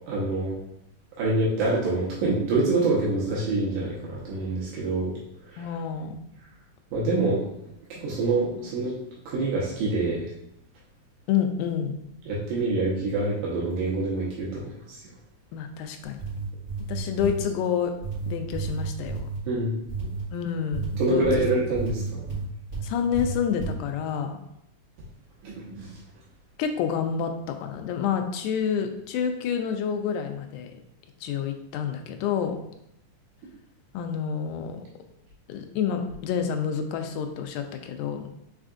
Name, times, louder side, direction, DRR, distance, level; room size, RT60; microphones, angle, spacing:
voice 1, 0.1-0.6 1.2-5.1 5.5-5.6 6.9-7.4 7.9-9.0 9.3-10.2 12.3-15.0 19.5-19.8 21.0-22.3 25.4-25.9, right 2 dB, 80° right, -6 dB, 2.4 m, -26 dB
voice 2, 5.6-6.2 11.3-12.0 15.5-16.2 16.9-18.0 18.3-19.2 20.3-21.3 21.7-22.2 22.8-24.4 26.6-30.7 31.2-32.6 33.9-34.8 35.5-38.3, left 7 dB, 85° left, 6 dB, 2.0 m, -28 dB
sound 1, 16.0-17.5 18.0-19.4 19.9-20.3 20.7-22.9 23.1-23.8, right 4 dB, 35° right, 1.9 m, -31 dB
5.6 x 3.5 x 2.5 m, 0.79 s
omnidirectional pair, 3.5 m